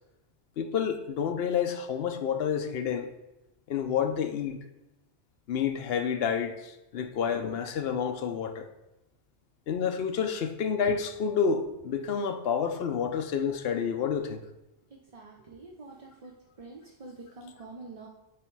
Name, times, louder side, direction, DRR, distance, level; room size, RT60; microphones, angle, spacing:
voice 1, 0.6-3.1 3.7-4.6 5.5-8.7 9.7-14.4, left 7 dB, 65° left, 0.8 m, -29 dB
voice 2, 15.1-16.3 16.6-18.1, right 3 dB, 40° right, 0.6 m, -46 dB
9.5 x 3.2 x 4.6 m
omnidirectional pair, 1.2 m